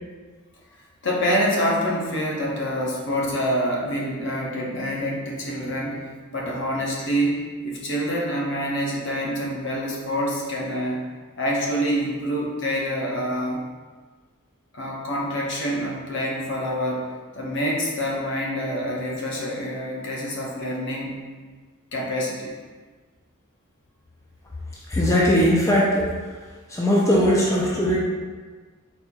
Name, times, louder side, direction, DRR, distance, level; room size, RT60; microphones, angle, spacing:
voice 1, 1.0-11.0 11.4-13.6 14.7-17.1 17.3-21.2 21.9-22.5, equal, 55° left, -3 dB, 0.8 m, -26 dB
voice 2, 24.9-26.1 26.7-28.0, equal, 15° left, -6 dB, 0.5 m, -19 dB
4.3 x 4.0 x 2.3 m, 1.4 s
head